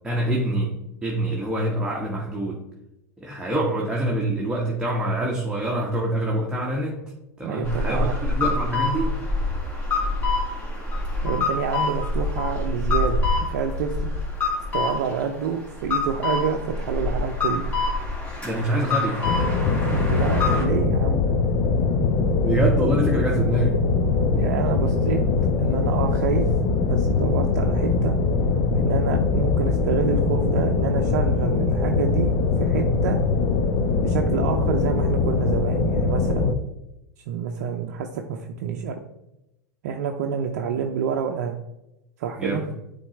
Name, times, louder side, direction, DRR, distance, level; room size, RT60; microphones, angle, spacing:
voice 1, 0.0-0.7 1.0-2.6 3.2-7.0 7.4-9.2 18.4-19.4 22.4-23.9 42.4-42.6, right 1 dB, 10° right, -3 dB, 1.2 m, -25 dB
voice 2, 7.4-8.1 11.2-14.1 14.7-17.6 19.7-21.2 24.3-25.2 25.6-26.5 26.8-28.2 28.7-33.2 34.0-36.5 37.3-39.0 39.8-41.6 42.2-42.6, right 7 dB, 60° right, 3 dB, 0.6 m, -28 dB
sound 1, 7.6-20.6, left 3 dB, 15° left, 2.3 m, -26 dB
sound 2, 19.2-36.5, left 4 dB, 45° left, 0.9 m, -22 dB
10.0 x 3.9 x 3.2 m, 0.88 s
figure-of-eight pair, 90°, 9 cm